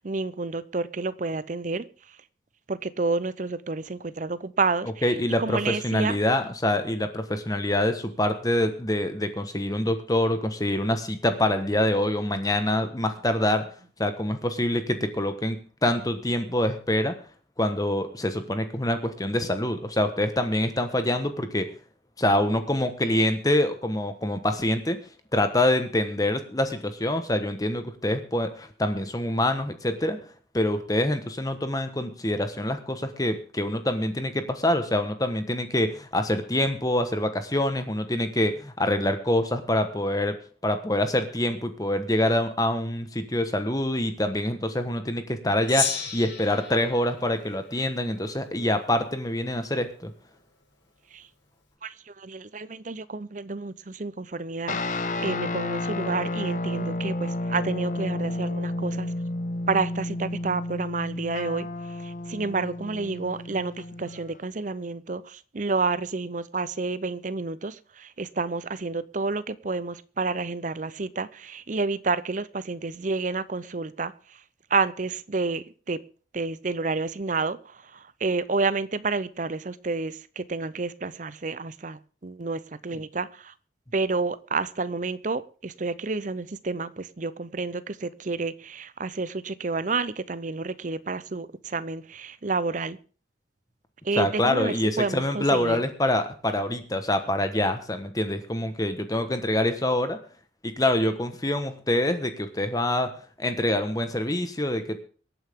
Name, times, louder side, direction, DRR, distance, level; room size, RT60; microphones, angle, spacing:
voice 1, 0.0-1.9 2.7-5.0 5.4-6.2 51.1-51.2 51.8-59.1 59.7-61.7 62.0-74.1 74.7-76.0 76.3-83.5 83.9-93.0 94.0-95.8, right 3 dB, 40° right, 0.7 m, -30 dB
voice 2, 5.0-13.6 14.0-17.1 17.6-21.7 22.2-25.0 25.3-30.2 30.5-40.4 40.6-50.1 94.2-100.2 100.6-103.1 103.4-105.0, left 1 dB, 20° left, 1.3 m, -25 dB
Gong, 45.7-48.3, left 6 dB, 80° left, 4.7 m, -33 dB
sound 1, 54.7-64.4, left 2 dB, 40° left, 1.0 m, -31 dB
24.0 x 9.1 x 3.7 m
head